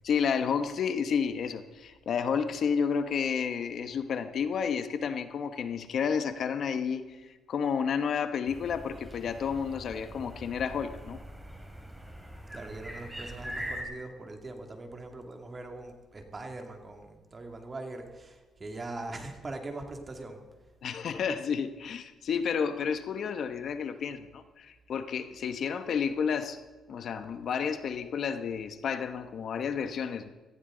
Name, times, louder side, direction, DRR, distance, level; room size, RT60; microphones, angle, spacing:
voice 1, 0.0-11.2 20.8-26.6 26.9-30.3, left 6 dB, 60° left, 9 dB, 1.1 m, -31 dB
sound 1, 8.5-13.8, equal, 5° right, 3.0 m, -42 dB
voice 2, 12.5-20.4, right 2 dB, 30° right, 3 dB, 2.5 m, -41 dB
18.0 x 15.0 x 3.9 m, 1.3 s
cardioid pair, 90°, 0 cm